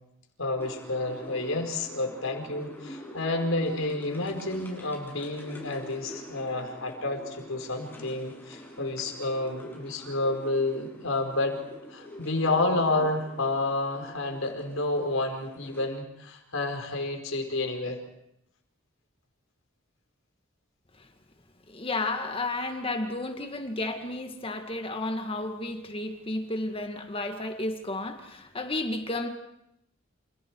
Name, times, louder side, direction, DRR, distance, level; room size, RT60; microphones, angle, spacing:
voice 1, 0.4-11.6 11.9-18.0, left 2 dB, 90° left, 4 dB, 4.9 m, -30 dB
sound 1, 0.6-15.9, equal, 10° left, 7.7 m, -46 dB
voice 2, 21.7-29.3, left 2 dB, 25° left, 6 dB, 2.0 m, -32 dB
30.0 x 28.5 x 4.8 m, 0.79 s
head